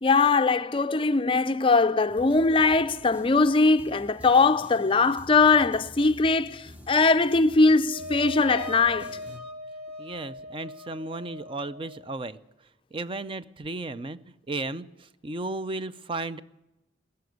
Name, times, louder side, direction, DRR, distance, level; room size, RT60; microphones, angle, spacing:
voice 1, 0.0-9.2, left 3 dB, 30° left, 0.5 m, -21 dB
sound 1, 2.1-9.4, left 1 dB, 10° right, 1.0 m, -48 dB
sound 2, 7.8-12.0, left 1 dB, 60° right, 2.0 m, -39 dB
voice 2, 10.0-12.4 12.9-14.2 14.5-14.9 15.2-16.4, right 2 dB, 30° right, 0.5 m, -34 dB
19.5 x 6.9 x 9.3 m
head